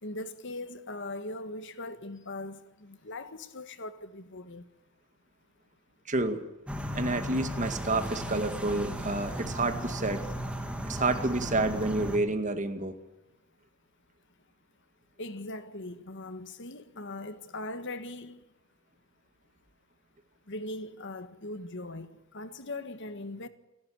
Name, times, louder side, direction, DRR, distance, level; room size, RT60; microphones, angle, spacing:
voice 1, 0.0-4.7 15.2-18.5 20.5-23.5, left 2 dB, 55° left, 1.6 m, -40 dB
voice 2, 6.1-6.4 6.9-10.3 10.9-13.0, right 2 dB, 35° right, 2.1 m, -29 dB
sound 1, 6.7-12.2, equal, 5° right, 2.4 m, -36 dB
29.0 x 12.5 x 8.9 m
head